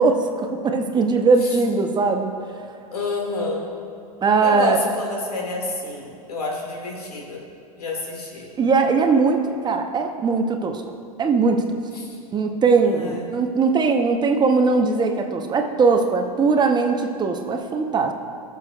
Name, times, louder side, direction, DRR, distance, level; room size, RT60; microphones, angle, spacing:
voice 1, 0.0-2.3 4.2-4.8 8.6-10.8 11.2-11.6 12.3-18.1, right 4 dB, 20° right, 4 dB, 0.8 m, -20 dB
voice 2, 2.9-3.7 4.4-7.4 7.8-8.5 11.9-12.2 12.8-13.3, left 2 dB, 85° left, -1 dB, 2.0 m, -28 dB
20.0 x 7.0 x 2.3 m, 2.4 s
hypercardioid pair, 95°, 19 cm